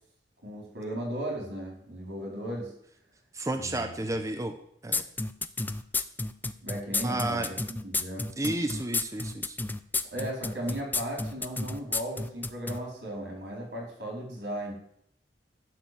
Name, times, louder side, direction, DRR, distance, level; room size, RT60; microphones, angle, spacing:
voice 1, 0.4-2.7 3.5-4.0 6.6-8.3 10.1-14.7, right 1 dB, 85° right, -1 dB, 4.4 m, -36 dB
voice 2, 3.3-4.5 4.8-5.0 7.0-7.5 8.4-9.6, right 1 dB, 20° right, 6 dB, 0.7 m, -31 dB
sound 1, 4.9-12.8, left 3 dB, 10° left, 0.4 m, -30 dB
12.0 x 4.5 x 7.8 m, 0.69 s
head